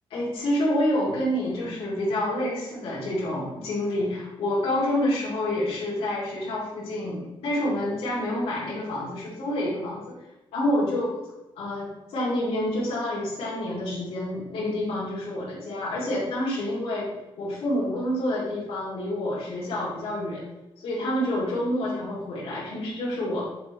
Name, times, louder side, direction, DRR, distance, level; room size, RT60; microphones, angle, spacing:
voice 1, 0.1-10.2 10.5-11.1 11.6-17.1 17.4-20.4 20.8-23.5, left 1 dB, 70° left, -7 dB, 2.3 m, -28 dB
6.7 x 4.4 x 4.0 m, 1.0 s
cardioid pair, 170°, 10 cm